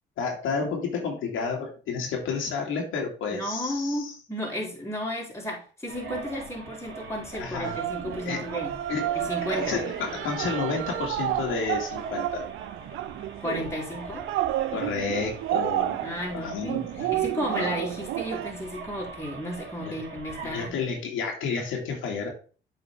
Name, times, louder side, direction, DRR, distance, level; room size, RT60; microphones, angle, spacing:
voice 1, 0.2-4.1 7.3-7.8 8.2-8.5 8.9-9.1 9.5-12.4 14.7-16.0 16.3-17.1 19.8-19.9 20.4-22.3, left 5 dB, 85° left, 0 dB, 2.3 m, -31 dB
voice 2, 3.3-8.8 9.2-9.8 13.4-14.3 16.0-20.7, equal, 15° left, -2 dB, 3.6 m, -33 dB
sound 1, 5.9-20.7, right 4 dB, 60° right, 2.4 m, -42 dB
sound 2, 7.6-18.5, right 14 dB, 85° right, 0.4 m, -31 dB
7.9 x 5.0 x 3.5 m, 0.37 s
cardioid pair, 90°, 20 cm